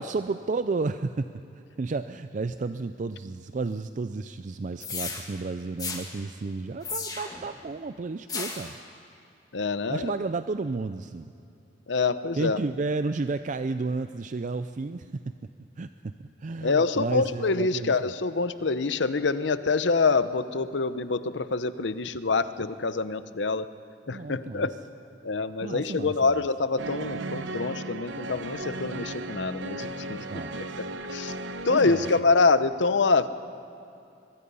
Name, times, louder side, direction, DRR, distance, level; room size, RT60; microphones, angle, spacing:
voice 1, 0.0-8.8 9.9-11.3 12.3-15.1 15.8-15.9 16.2-18.0 24.1-24.8 25.6-26.4 30.2-30.8 31.3-31.4 31.7-32.1, right 3 dB, 45° right, 11 dB, 0.4 m, -32 dB
sound 1, 4.8-5.2 5.8-6.0 6.8-7.5 8.3-8.7, left 4 dB, 20° left, 2.3 m, -34 dB
voice 2, 9.5-10.1 11.9-12.6 16.6-23.7 24.1-24.7 25.2-30.2 30.8-30.9 31.1-31.3 31.7-33.3, left 4 dB, 75° left, 13 dB, 0.7 m, -25 dB
sound 2, 26.8-32.2, right 2 dB, 80° right, 0.8 m, -36 dB
23.5 x 21.5 x 5.5 m, 2.6 s
head